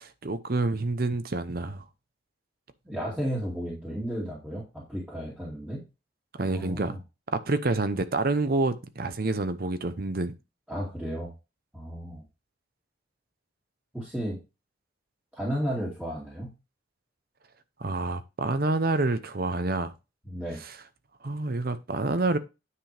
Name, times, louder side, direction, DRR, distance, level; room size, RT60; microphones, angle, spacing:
voice 1, 0.0-1.8 6.3-7.0 7.3-10.3 17.8-19.9 20.6-20.7 21.2-22.4, right 2 dB, 50° right, 0.7 m, -28 dB
voice 2, 2.9-5.8 6.5-7.0 10.7-11.3 11.7-12.2 13.9-14.4 15.3-16.5 20.3-20.6, equal, 5° right, 2.3 m, -33 dB
9.7 x 5.8 x 3.4 m
head